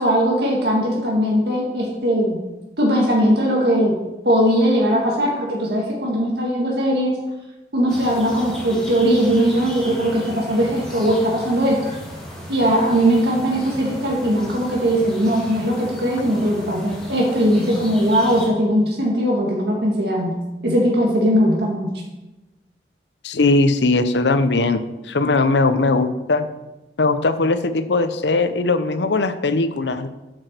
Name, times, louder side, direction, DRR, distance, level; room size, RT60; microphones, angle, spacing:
voice 1, 0.0-2.4 2.8-4.0 4.2-7.1 7.7-11.9 12.5-20.3 20.6-21.9, equal, 70° right, -1 dB, 1.8 m, -19 dB
sound 1, 7.9-18.5, equal, 5° left, 2.0 m, -36 dB
voice 2, 23.2-26.5 27.0-30.1, left 3 dB, 85° left, 11 dB, 0.7 m, -19 dB
8.7 x 6.2 x 6.6 m, 1.0 s
head